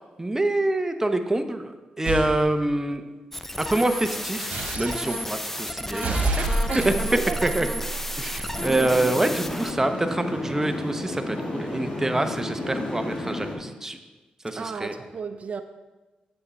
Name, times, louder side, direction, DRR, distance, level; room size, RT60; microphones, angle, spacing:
voice 1, 0.2-1.7 2.0-3.0 3.6-6.4 6.7-6.9 7.4-7.7 8.2-14.0 14.4-15.0, right 1 dB, 15° right, 0.8 m, -26 dB
sound 1, 2.1-2.3 4.5-5.2 5.9-8.6, right 2 dB, 65° right, 1.5 m, -28 dB
sound 2, 3.3-9.7, left 1 dB, 10° left, 0.5 m, -32 dB
voice 2, 6.7-7.4 14.6-15.6, right 5 dB, 50° right, 0.6 m, -33 dB
sound 3, 8.5-13.5, left 1 dB, 50° left, 2.2 m, -32 dB
7.7 x 6.9 x 4.2 m
cardioid pair, 65°, 3 cm